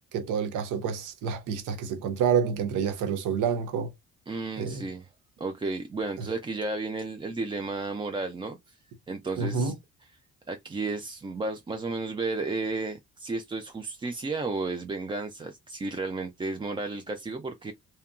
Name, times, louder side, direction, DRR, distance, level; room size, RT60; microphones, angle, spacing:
voice 1, 0.1-3.9 4.6-4.8 9.4-9.7, right 7 dB, 85° right, 0.7 m, -28 dB
voice 2, 4.3-5.1 5.4-8.8 9.1-9.7 10.5-17.7, right 3 dB, 15° right, 0.3 m, -33 dB
2.8 x 2.2 x 2.3 m
cardioid pair, 90°, 30 cm